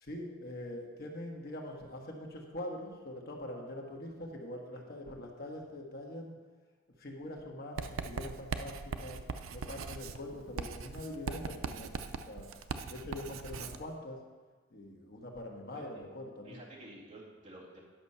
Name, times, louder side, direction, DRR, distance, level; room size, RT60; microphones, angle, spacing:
voice 1, 0.0-6.3 7.0-9.2 9.5-12.5 12.9-14.2 14.7-16.6, left 1 dB, 50° left, 0 dB, 1.5 m, -43 dB
Writing, 7.8-13.8, right 4 dB, 85° right, 0.5 m, -40 dB
voice 2, 15.7-16.0 16.4-17.8, right 1 dB, 35° right, -5 dB, 2.2 m, -51 dB
10.5 x 6.1 x 5.6 m, 1.4 s
head